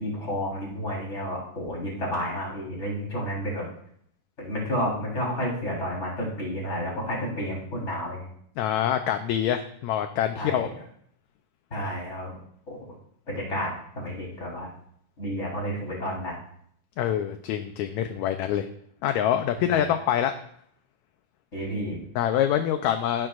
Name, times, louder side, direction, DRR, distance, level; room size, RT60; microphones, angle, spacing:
voice 1, 0.0-3.6 4.4-8.3 10.4-10.7 11.7-12.3 12.7-12.9 13.3-13.7 14.0-14.7 15.2-16.4 19.7-19.9 21.5-22.0, equal, 20° left, -4 dB, 4.2 m, -31 dB
voice 2, 8.6-10.7 17.0-18.7 19.0-20.3 22.2-23.3, left 10 dB, 75° left, 7 dB, 1.8 m, -25 dB
16.5 x 10.5 x 2.5 m, 0.66 s
omnidirectional pair, 3.6 m